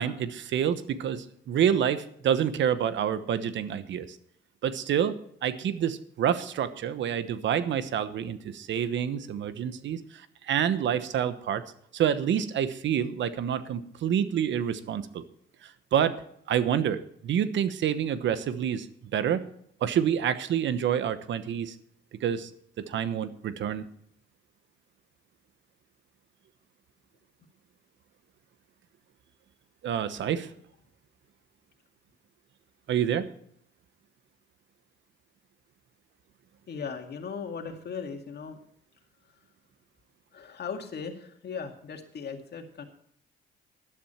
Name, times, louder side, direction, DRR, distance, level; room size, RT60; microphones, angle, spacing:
voice 1, 0.0-4.2 4.6-10.0 10.5-11.6 11.9-15.2 15.6-16.1 16.5-18.9 19.1-19.4 19.8-21.7 22.2-22.5 22.8-23.9 29.8-30.5 32.9-33.3, right 9 dB, 70° right, 13 dB, 1.1 m, -27 dB
voice 2, 36.7-38.6 40.3-42.8, left 6 dB, 55° left, 5 dB, 2.2 m, -38 dB
12.5 x 11.0 x 4.4 m, 0.67 s
cardioid pair, 90°, 20 cm